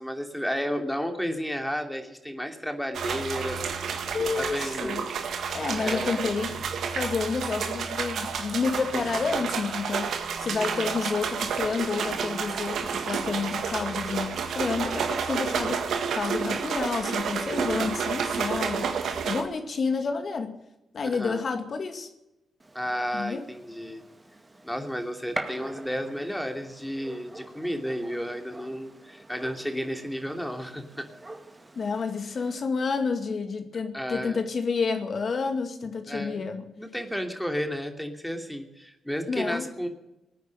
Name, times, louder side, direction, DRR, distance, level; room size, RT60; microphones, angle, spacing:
voice 1, 0.0-5.0 5.8-6.2 10.5-10.9 21.1-21.4 22.7-24.0 24.6-31.1 33.9-34.4 36.1-36.4 36.8-39.9, equal, 5° left, 5 dB, 2.8 m, -32 dB
sound 1, 2.9-19.4, right 6 dB, 70° right, 1.6 m, -30 dB
voice 2, 4.1-5.1 5.5-6.6 6.9-19.0 19.3-20.6 20.9-22.1 23.1-23.4 31.7-36.6 39.3-39.7, left 5 dB, 55° left, 7 dB, 2.1 m, -29 dB
Gunshot gunfire, 22.6-32.6, right 2 dB, 25° right, 2.1 m, -44 dB
19.0 x 9.4 x 7.8 m, 0.93 s
hypercardioid pair, 40°, 0 cm